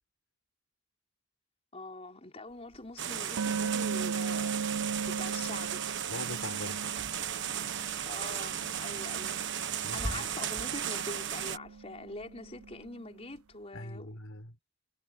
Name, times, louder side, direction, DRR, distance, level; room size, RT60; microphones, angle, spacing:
voice 1, 1.7-4.6 5.0-5.9 8.1-9.4 9.9-14.1, left 2 dB, 25° left, 4.5 m, -44 dB
sound 1, 2.7-2.8 3.4-8.1 8.3-13.2, right 5 dB, 75° right, 0.6 m, -39 dB
sound 2, 3.0-11.6, right 9 dB, 50° right, 1.4 m, -35 dB
Car / Engine, 5.5-12.9, equal, 5° right, 7.6 m, -48 dB
voice 2, 6.1-7.0 9.8-10.3 13.7-14.6, left 1 dB, 60° left, 5.5 m, -42 dB
head